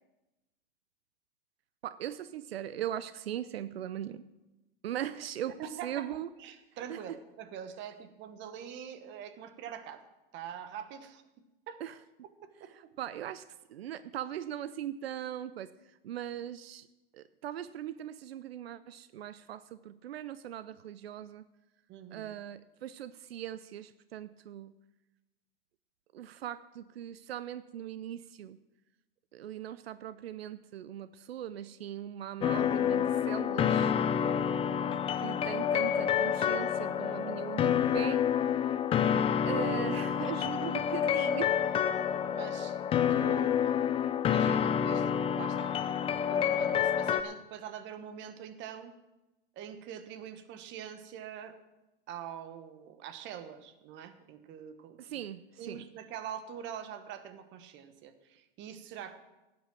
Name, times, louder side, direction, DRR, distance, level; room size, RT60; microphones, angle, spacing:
voice 1, 1.8-4.3 4.8-5.6 5.8-6.3 6.9-7.0 11.8-12.0 12.7-13.4 13.7-15.7 16.0-16.9 17.1-21.4 22.1-24.7 26.1-28.6 29.3-33.9 34.9-38.2 39.4-41.6 55.0-55.9, right 11 dB, 90° right, 15 dB, 0.6 m, -40 dB
voice 2, 5.6-6.1 6.4-10.1 10.3-11.2 11.7-11.8 12.4-12.9 21.9-22.3 40.6-40.7 42.3-42.8 43.1-45.8 46.3-48.9 49.5-51.6 52.1-55.2 55.6-59.2, right 9 dB, 40° right, 10 dB, 1.3 m, -44 dB
sound 1, 32.4-47.2, left 8 dB, 20° left, 0.4 m, -28 dB
12.5 x 9.2 x 6.1 m, 1.0 s
hypercardioid pair, 120°, 30 cm